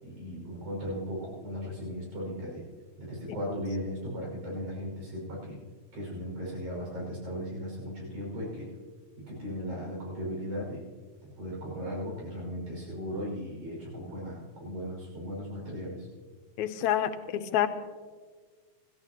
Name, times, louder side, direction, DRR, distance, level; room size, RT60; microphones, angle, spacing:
voice 1, 0.0-2.7 3.0-5.6 5.9-8.7 9.2-10.8 11.4-16.1, equal, 75° right, -3 dB, 7.2 m, -37 dB
voice 2, 16.6-17.7, left 11 dB, 75° left, 9 dB, 2.1 m, -28 dB
26.5 x 14.0 x 3.0 m, 1.5 s
omnidirectional pair, 3.5 m